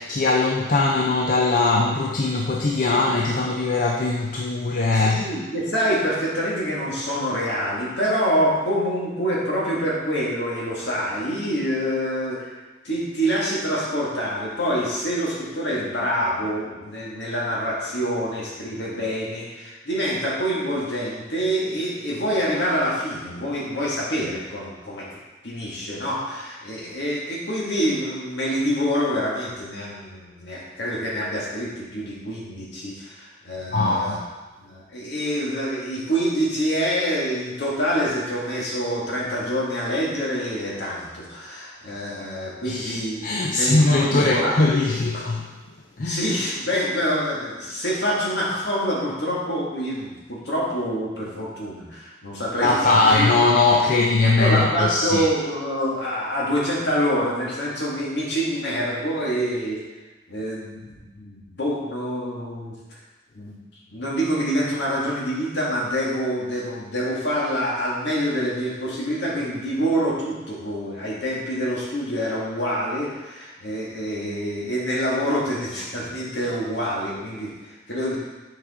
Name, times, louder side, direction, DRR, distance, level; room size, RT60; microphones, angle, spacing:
voice 1, 0.0-5.3 33.7-34.2 42.6-45.5 46.0-46.2 52.5-55.3, left 3 dB, 45° left, -1 dB, 0.5 m, -20 dB
voice 2, 4.9-12.6 12.8-25.2 25.4-34.2 34.6-44.6 46.0-53.3 54.4-59.8 60.3-62.7 63.3-63.6 63.9-78.2, equal, 65° left, -5 dB, 1.9 m, -26 dB
7.2 x 4.9 x 3.7 m, 1.2 s
head